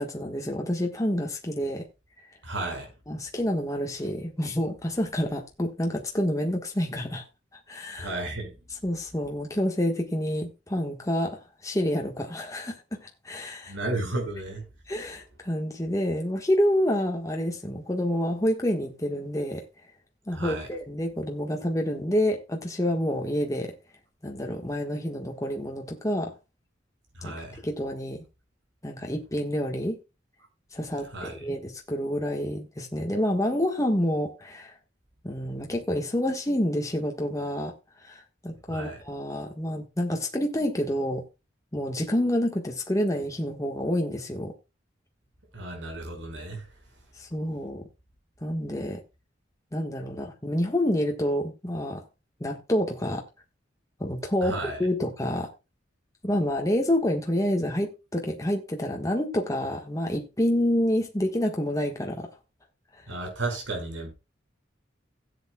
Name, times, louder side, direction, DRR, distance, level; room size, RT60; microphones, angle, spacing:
voice 1, 0.0-1.8 3.1-7.2 7.7-8.1 8.8-13.7 14.9-19.6 20.3-23.7 24.2-26.3 27.2-27.3 27.6-28.2 28.8-30.0 30.7-34.7 35.2-37.7 38.0-41.2 41.7-44.5 47.2-47.8 48.4-49.0 49.7-52.0 52.4-53.2 54.0-55.5 56.2-62.3, equal, 20° left, 1.4 m, -28 dB
voice 2, 2.4-2.9 8.0-8.5 13.7-14.6 20.3-20.7 27.2-27.6 31.1-31.4 38.7-39.0 45.5-46.7 54.4-54.8 63.1-64.1, right 2 dB, 75° right, 5.5 m, -33 dB
16.5 x 8.3 x 2.3 m
head